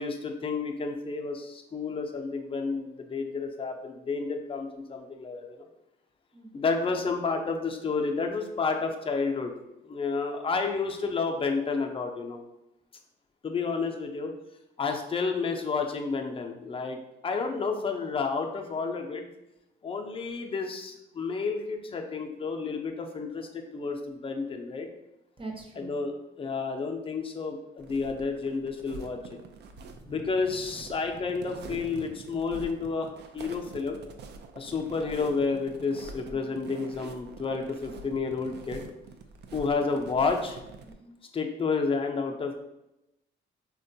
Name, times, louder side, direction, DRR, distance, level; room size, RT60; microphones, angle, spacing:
voice 1, 0.0-5.6 6.5-9.5 9.8-12.4 13.4-14.3 14.8-19.3 19.8-24.9 25.9-29.2 30.1-34.0 34.5-38.9 39.5-40.6 41.3-42.5, left 4 dB, 25° left, 3 dB, 0.5 m, -30 dB
voice 2, 6.3-6.7 25.4-26.0 29.8-31.0 31.5-31.9 36.3-36.6 40.8-41.1, right 3 dB, 25° right, 1 dB, 0.7 m, -46 dB
sound 1, 27.8-40.9, right 4 dB, 60° right, 0.4 m, -45 dB
3.6 x 2.2 x 2.7 m, 0.90 s
cardioid pair, 90°, 20 cm